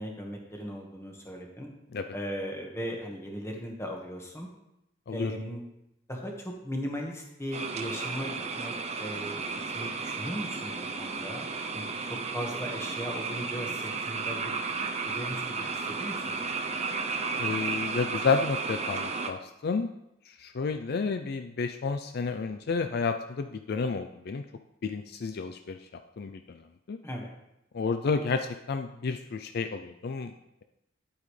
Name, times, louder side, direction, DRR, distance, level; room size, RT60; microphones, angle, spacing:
voice 1, 0.0-1.7 2.1-4.5 5.1-5.6 6.1-9.4 9.7-10.7 11.0-14.5 15.0-16.2 16.6-16.7 27.0-27.3, equal, 15° left, 0 dB, 1.6 m, -37 dB
sound 1, 7.5-19.3, right 4 dB, 35° right, 0.7 m, -33 dB
voice 2, 17.4-19.9 20.4-24.4 24.8-25.8 26.2-26.6 26.9-27.0 27.7-30.3, left 4 dB, 55° left, 7 dB, 0.4 m, -30 dB
10.5 x 8.7 x 3.3 m, 0.85 s
head